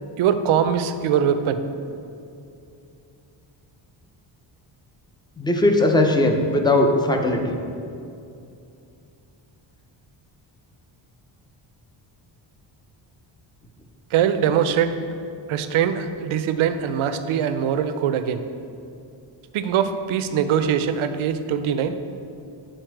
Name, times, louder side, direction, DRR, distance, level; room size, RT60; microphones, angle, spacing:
voice 1, 0.2-1.6 14.1-14.9 15.5-18.4 19.5-21.9, right 8 dB, 85° right, 10 dB, 0.6 m, -22 dB
voice 2, 5.4-7.6, left 1 dB, 10° left, 3 dB, 0.3 m, -19 dB
7.9 x 4.2 x 4.5 m, 2.6 s
wide cardioid pair, 165°, 47 cm